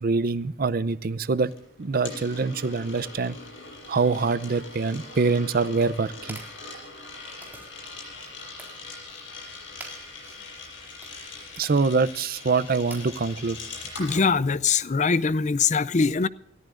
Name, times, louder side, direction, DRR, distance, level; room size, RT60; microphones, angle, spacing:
voice 1, 0.0-1.5 1.8-3.4 3.9-6.4 11.6-13.6, right 4 dB, 50° right, 0.6 m, -24 dB
Coin (dropping), 1.5-14.3, left 3 dB, 85° left, 6.5 m, -42 dB
sound 1, 5.6-14.6, right 2 dB, 10° right, 4.0 m, -50 dB
voice 2, 14.0-16.3, left 5 dB, 40° left, 0.5 m, -22 dB
28.0 x 14.0 x 2.5 m
head